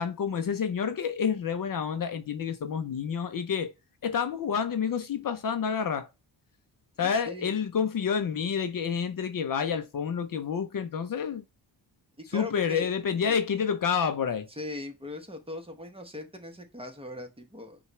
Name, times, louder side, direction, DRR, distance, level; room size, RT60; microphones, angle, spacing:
voice 1, 0.0-3.7 4.0-6.1 7.0-11.4 12.3-14.5, left 7 dB, 50° left, 0.6 m, -29 dB
voice 2, 7.0-7.5 12.2-12.9 13.3-13.4 14.6-17.8, left 1 dB, 10° right, 1.0 m, -40 dB
5.5 x 2.4 x 3.0 m
cardioid pair, 90°, 44 cm